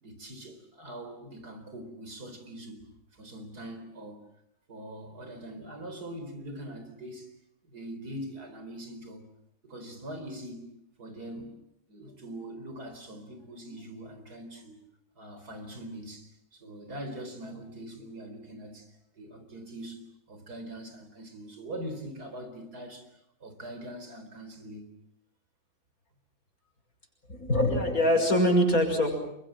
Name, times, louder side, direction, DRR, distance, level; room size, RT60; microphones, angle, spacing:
voice 1, 0.0-2.8 3.1-4.2 4.7-7.3 7.6-9.3 9.6-11.5 11.9-14.8 15.2-24.9, right 1 dB, 85° right, 4.9 m, -42 dB
voice 2, 27.3-29.1, equal, 65° left, 6.7 m, -23 dB
28.0 x 23.0 x 7.6 m
omnidirectional pair, 1.6 m